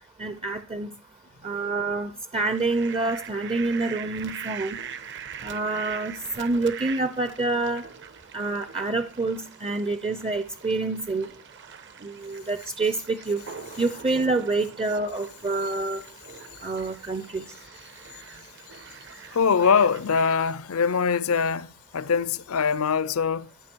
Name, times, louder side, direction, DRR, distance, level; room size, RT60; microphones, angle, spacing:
voice 1, 0.2-0.9 1.4-4.8 5.4-7.8 8.3-11.3 12.0-13.4 13.8-16.0 16.6-17.4, right 3 dB, 25° right, 0.6 m, -27 dB
Fowl, 2.4-20.5, right 7 dB, 55° right, 1.0 m, -43 dB
voice 2, 19.3-23.5, left 6 dB, 65° left, 0.5 m, -23 dB
14.5 x 11.5 x 4.5 m
head